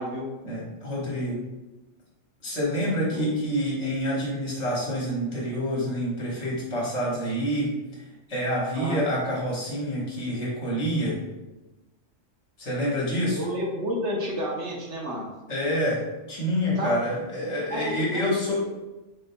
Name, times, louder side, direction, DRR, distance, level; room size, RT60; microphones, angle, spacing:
voice 1, 0.4-1.4 2.4-8.0 8.3-11.2 12.6-13.4 15.5-16.0 16.3-18.6, equal, 65° left, -5 dB, 1.6 m, -27 dB
voice 2, 13.4-15.2 16.8-16.9 17.7-17.8 18.1-18.2, equal, 65° right, -2 dB, 1.1 m, -30 dB
4.3 x 3.8 x 2.2 m, 1.1 s
omnidirectional pair, 1.3 m